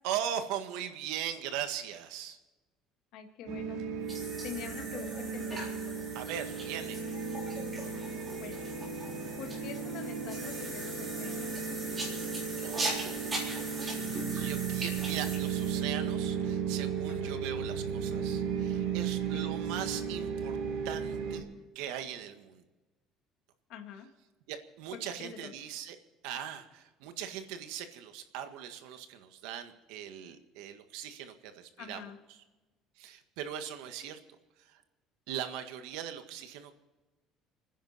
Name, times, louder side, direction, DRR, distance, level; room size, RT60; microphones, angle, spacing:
voice 1, 0.0-2.4 6.1-7.0 12.6-20.6 20.8-21.4 21.7-22.6 24.5-26.0 26.2-32.4 33.0-34.2 34.6-34.8 35.3-36.7, right 10 dB, 85° right, 8 dB, 1.7 m, -40 dB
voice 2, 3.1-3.8 4.4-5.7 8.3-8.6 9.4-11.5 17.1-17.4 19.3-19.5 23.7-24.1 24.9-25.5 31.8-32.2, left 7 dB, 55° left, 6 dB, 1.9 m, -45 dB
sound 1, 3.5-21.4, right 6 dB, 55° right, 3.7 m, -35 dB
sound 2, 4.1-15.8, right 2 dB, 20° right, 3.9 m, -40 dB
29.0 x 10.5 x 4.3 m, 1.1 s
cardioid pair, 180°, 0 cm